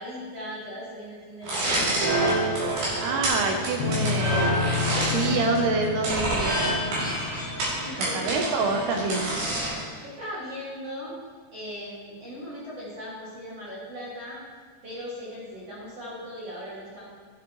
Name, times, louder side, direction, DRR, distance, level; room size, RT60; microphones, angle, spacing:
voice 1, 0.0-1.9 7.7-8.6 10.0-11.2 11.5-14.4 14.8-17.1, equal, 45° right, -8 dB, 2.4 m, -38 dB
sound 1, 1.4-9.9, right 1 dB, 60° right, 4.7 m, -27 dB
voice 2, 3.0-6.8 8.0-9.3, right 3 dB, 75° right, 3 dB, 2.5 m, -27 dB
sound 2, 3.8-8.2, left 6 dB, 85° left, 2.2 m, -31 dB
11.5 x 9.0 x 3.1 m, 1.5 s
omnidirectional pair, 5.3 m